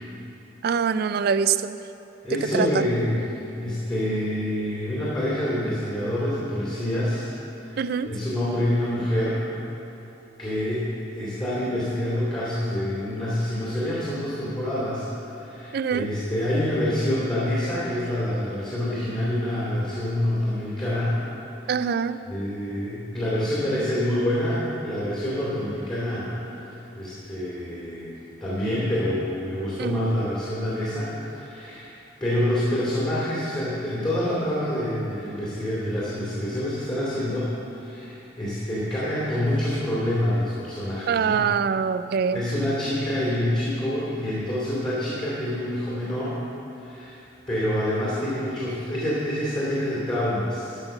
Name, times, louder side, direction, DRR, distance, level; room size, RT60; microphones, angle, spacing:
voice 1, 0.6-1.8 2.5-2.7 7.8-8.1 15.7-16.1 21.7-22.2 29.8-30.2 41.1-42.4, right 6 dB, 55° right, 13 dB, 0.3 m, -24 dB
voice 2, 2.2-3.2 3.6-7.3 7.7-9.4 10.4-15.1 15.3-21.2 21.6-21.9 22.3-31.9 32.2-41.4 42.3-46.4 46.8-47.2 47.5-50.8, left 1 dB, 20° left, -8 dB, 2.6 m, -27 dB
13.0 x 5.7 x 6.9 m, 2.9 s
head